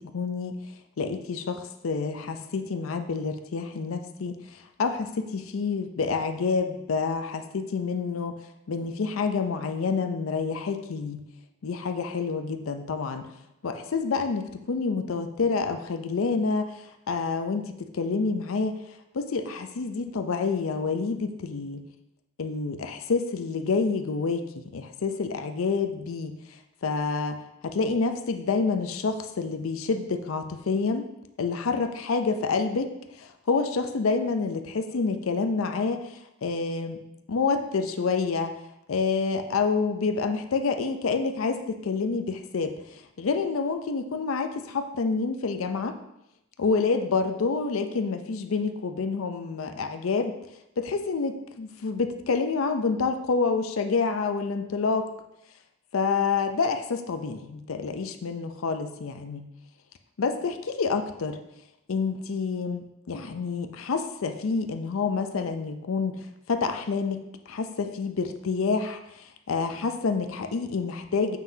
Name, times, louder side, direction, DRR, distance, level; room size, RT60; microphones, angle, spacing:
voice 1, 0.1-0.5 1.0-8.4 8.7-11.2 11.6-13.3 13.6-16.7 17.1-18.8 19.1-21.8 22.4-26.4 26.8-31.1 31.4-37.0 37.3-38.6 38.9-45.9 46.6-50.3 50.8-55.1 55.9-59.5 60.2-61.4 61.9-67.2 67.5-71.4, left 4 dB, 85° left, 7 dB, 0.5 m, -28 dB
7.3 x 5.9 x 2.7 m, 0.86 s
head